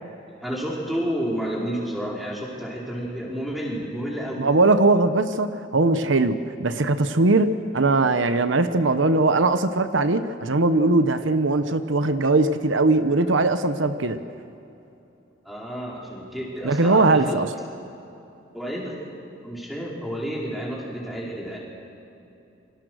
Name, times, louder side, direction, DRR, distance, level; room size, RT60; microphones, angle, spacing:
voice 1, 0.4-4.5 15.4-17.4 18.5-19.0 19.4-21.6, equal, ahead, -4 dB, 4.7 m, -30 dB
voice 2, 4.4-14.2 16.6-17.5, right 2 dB, 85° right, 10 dB, 1.0 m, -20 dB
28.0 x 24.5 x 6.5 m, 2.9 s
head